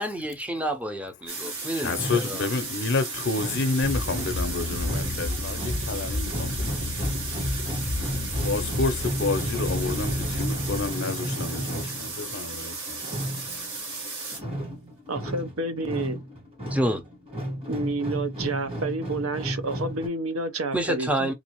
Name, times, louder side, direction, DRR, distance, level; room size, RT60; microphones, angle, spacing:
voice 1, 0.0-2.5 16.7-17.0 20.7-21.3, right 1 dB, 5° right, 0.6 m, -28 dB
sound 1, 1.3-14.4, right 3 dB, 65° right, 1.4 m, -35 dB
sound 2, 1.4-20.1, equal, 25° right, 1.5 m, -34 dB
voice 2, 1.7-6.8 8.4-13.0, left 3 dB, 55° left, 0.6 m, -29 dB
sound 3, 3.8-10.9, left 2 dB, 50° right, 1.3 m, -32 dB
voice 3, 15.1-16.2 17.7-21.3, right 2 dB, 85° right, 0.8 m, -29 dB
3.8 x 2.7 x 2.9 m
head